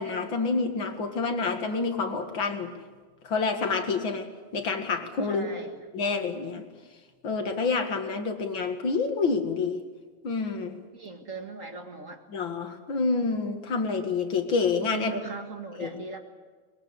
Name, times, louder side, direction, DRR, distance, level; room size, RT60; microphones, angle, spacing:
voice 1, 0.0-2.7 3.2-5.5 5.9-6.6 7.2-9.8 10.2-10.8 12.3-15.1 15.8-15.9, left 4 dB, 65° left, 5 dB, 2.6 m, -28 dB
voice 2, 5.3-5.8 10.9-12.2 14.9-16.2, right 3 dB, 40° right, 4 dB, 2.1 m, -38 dB
23.0 x 21.5 x 8.3 m, 1.4 s
omnidirectional pair, 2.3 m